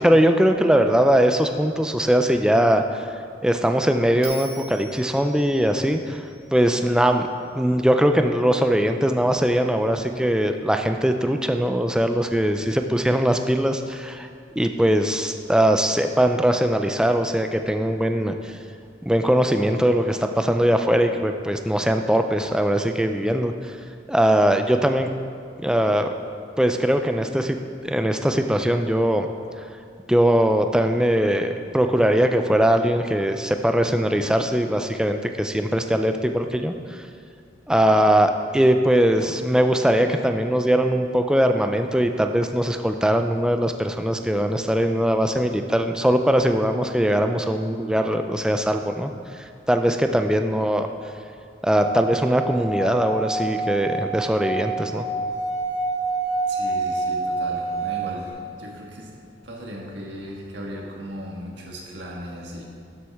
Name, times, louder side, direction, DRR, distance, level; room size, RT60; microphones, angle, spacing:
voice 1, 0.0-3.1 3.4-6.2 6.5-7.2 7.5-14.3 14.6-18.6 19.1-23.7 24.1-25.1 25.6-26.1 26.6-27.6 27.8-29.3 30.1-37.0 37.7-50.9 51.6-55.0, equal, 5° right, 6 dB, 0.4 m, -21 dB
Bell, 4.2-7.5, right 2 dB, 30° right, 1.7 m, -42 dB
Singing / Glass, 51.7-58.3, right 3 dB, 60° left, 2.4 m, -27 dB
voice 2, 56.5-59.1 59.4-62.6, equal, 70° right, -1 dB, 1.6 m, -37 dB
12.5 x 7.4 x 3.5 m, 2.3 s
head